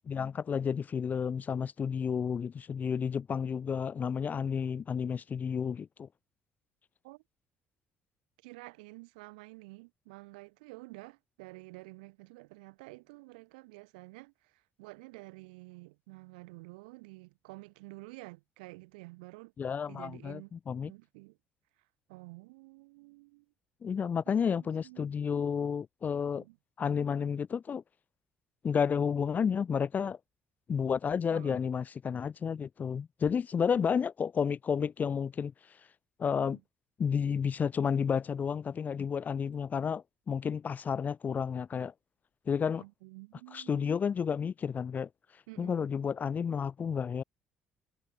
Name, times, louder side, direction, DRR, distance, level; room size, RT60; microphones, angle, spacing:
voice 1, 0.1-6.1 19.6-20.9 23.8-26.4 26.8-27.8 28.6-30.2 30.7-35.5 36.2-36.6 37.0-41.9 42.5-42.8 43.5-45.1 45.6-47.2, left 7 dB, 35° left, 0.4 m, -31 dB
voice 2, 8.4-19.5 19.9-20.5 20.9-21.4 22.1-23.5 24.3-25.1 26.4-26.6 31.3-31.6 36.4-36.6 42.8-43.9 45.5-45.9, right 25 dB, 75° right, 2.1 m, -50 dB
figure-of-eight pair, 50°, 5 cm